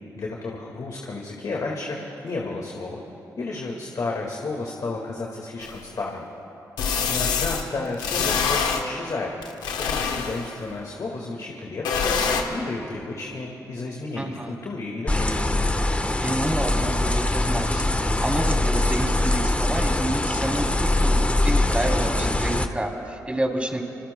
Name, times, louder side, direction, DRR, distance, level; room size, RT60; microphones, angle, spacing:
voice 1, 0.2-3.0 3.4-6.3 7.0-9.6 9.8-15.5, left 3 dB, 60° left, -1 dB, 1.9 m, -32 dB
sound 1, 5.6-5.7 6.8-7.6 8.0-8.8 9.4-10.6 11.8-12.4, left 6 dB, 85° left, 1.0 m, -25 dB
voice 2, 14.1-14.5 16.2-23.8, right 1 dB, 15° right, 1 dB, 2.9 m, -29 dB
sound 2, 15.1-22.7, left 1 dB, 20° left, 1.1 m, -23 dB
25.5 x 24.5 x 2.2 m, 3.0 s
supercardioid pair, 50°, 7 cm